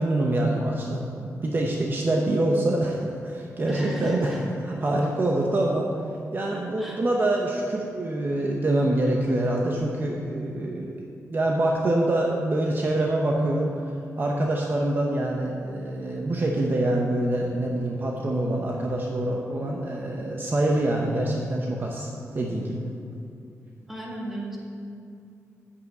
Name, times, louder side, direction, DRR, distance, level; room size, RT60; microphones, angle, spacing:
voice 1, 0.0-4.4 4.6-5.9 6.3-13.7 14.2-22.1 22.3-22.9, right 1 dB, 40° right, -1 dB, 0.8 m, -25 dB
voice 2, 3.7-4.4 6.5-7.0 23.9-24.6, right 1 dB, 5° right, -3 dB, 1.8 m, -36 dB
8.0 x 5.7 x 7.9 m, 2.5 s
wide cardioid pair, 115°, 6 cm